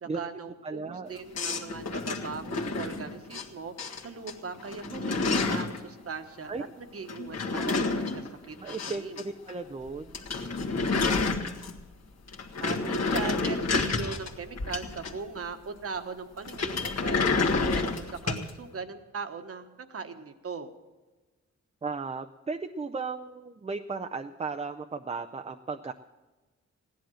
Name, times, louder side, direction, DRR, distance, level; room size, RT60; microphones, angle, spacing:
voice 1, 0.0-6.5 6.8-9.2 12.6-20.7, right 5 dB, 55° right, 7 dB, 1.3 m, -40 dB
voice 2, 0.6-1.1 6.5-6.6 8.6-10.1 21.8-25.9, right 4 dB, 20° right, 5 dB, 0.5 m, -35 dB
sound 1, 1.3-3.4 3.8-4.3 4.6-5.8 7.1-9.2 9.5-9.6 9.9-10.0 10.1-11.9 12.3-15.4 16.4-18.5, left 3 dB, 60° left, 1.7 m, -29 dB
16.0 x 10.5 x 6.3 m, 1.2 s
wide cardioid pair, 105°, 29 cm